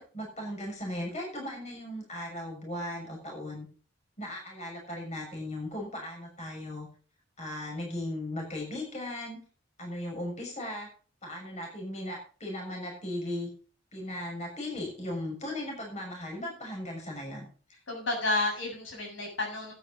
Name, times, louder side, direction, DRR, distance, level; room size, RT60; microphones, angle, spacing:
voice 1, 0.0-3.7 4.2-6.9 7.4-9.4 9.8-10.9 11.2-13.5 13.9-17.5, left 1 dB, 40° left, 0 dB, 6.6 m, -37 dB
voice 2, 17.9-19.7, left 2 dB, 80° left, 0 dB, 7.4 m, -31 dB
12.5 x 9.8 x 5.2 m, 0.40 s
head